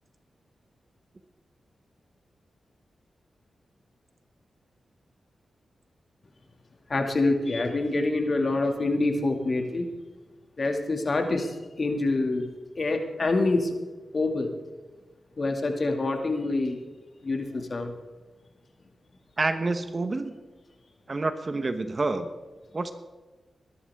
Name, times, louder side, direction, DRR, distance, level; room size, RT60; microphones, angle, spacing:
voice 1, 6.9-9.9 10.6-12.5 12.8-13.8 14.1-14.6 15.4-16.8 17.2-17.9, left 2 dB, 50° left, 4 dB, 2.3 m, -26 dB
voice 2, 19.4-20.4 21.1-22.3 22.7-22.9, right 3 dB, 40° right, 9 dB, 1.1 m, -28 dB
21.5 x 11.0 x 3.6 m, 1.2 s
cardioid pair, 50°, 0 cm